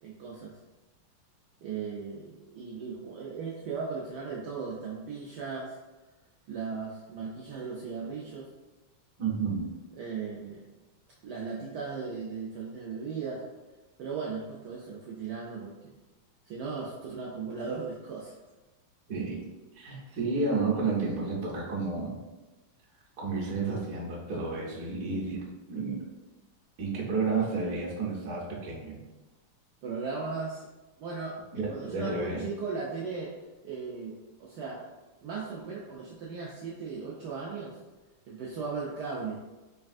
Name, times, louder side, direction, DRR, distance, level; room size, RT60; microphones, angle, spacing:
voice 1, 0.0-0.5 1.6-5.8 6.5-8.5 10.0-10.6 11.2-13.4 14.0-16.0 16.5-18.3 25.0-25.4 29.8-30.6 31.0-31.4 31.7-33.3 33.6-34.8 35.2-37.8 38.3-39.4, right 5 dB, 85° right, -3 dB, 0.9 m, -37 dB
voice 2, 9.2-9.7 19.1-19.4 19.8-22.2 23.2-25.4 25.7-26.0 26.8-29.0 31.5-32.4, right 4 dB, 60° right, -5 dB, 1.0 m, -31 dB
4.0 x 3.3 x 2.5 m, 1.1 s
omnidirectional pair, 2.4 m